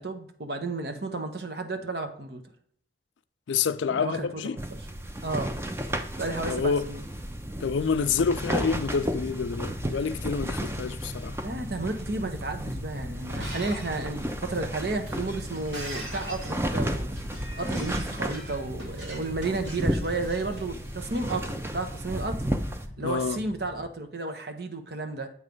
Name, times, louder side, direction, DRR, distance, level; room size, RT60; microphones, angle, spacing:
voice 1, 0.0-2.4 3.9-4.8 5.2-5.6 6.1-7.0 11.4-17.1 17.5-22.5 23.0-25.3, right 2 dB, 60° right, 0.9 m, -32 dB
voice 2, 3.5-4.6 6.5-6.8 7.6-11.4 23.0-23.4, left 5 dB, 90° left, 0.4 m, -27 dB
sound 1, 4.6-22.9, right 1 dB, 15° right, 0.5 m, -33 dB
sound 2, 8.2-23.9, left 1 dB, 25° left, 0.8 m, -43 dB
Shatter, 13.2-21.2, right 1 dB, 80° right, 2.1 m, -42 dB
8.1 x 3.2 x 5.2 m
head